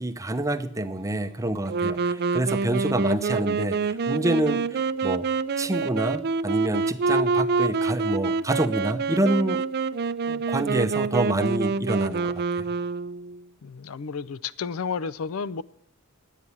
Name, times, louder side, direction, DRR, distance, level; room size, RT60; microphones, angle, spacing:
voice 1, 0.0-5.3 5.6-9.6 10.3-12.6, right 1 dB, 15° right, 0.7 m, -27 dB
Wind instrument woodwind instrument, 1.7-13.4, right 4 dB, 50° right, 0.4 m, -26 dB
voice 2, 13.6-15.6, left 5 dB, 70° left, 0.5 m, -31 dB
11.0 x 9.2 x 8.5 m
head